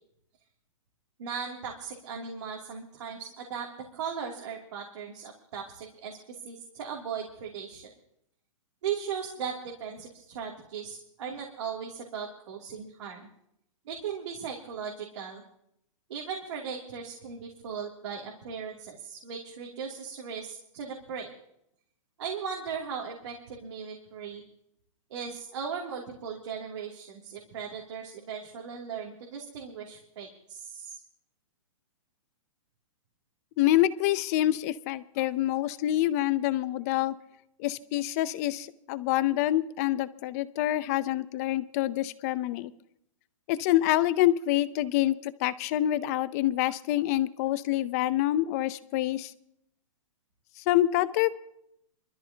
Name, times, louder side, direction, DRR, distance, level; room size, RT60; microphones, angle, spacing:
voice 1, 1.2-6.2 6.4-7.9 8.8-13.3 13.9-15.4 16.1-21.3 22.2-24.4 25.1-31.0, right 7 dB, 60° right, -1 dB, 2.8 m, -38 dB
voice 2, 33.6-37.1 37.6-42.7 43.5-49.3 50.6-51.4, left 14 dB, 30° left, 16 dB, 0.6 m, -26 dB
24.5 x 13.5 x 2.9 m, 0.75 s
hypercardioid pair, 160°, 17 cm